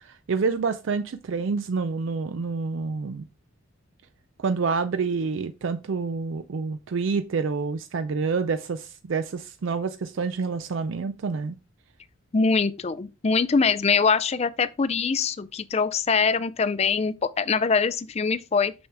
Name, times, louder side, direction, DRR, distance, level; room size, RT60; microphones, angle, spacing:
voice 1, 0.3-3.2 4.4-11.6, right 4 dB, 65° right, 0.4 m, -28 dB
voice 2, 12.3-18.7, left 5 dB, 30° left, 0.4 m, -23 dB
6.2 x 6.2 x 3.4 m
head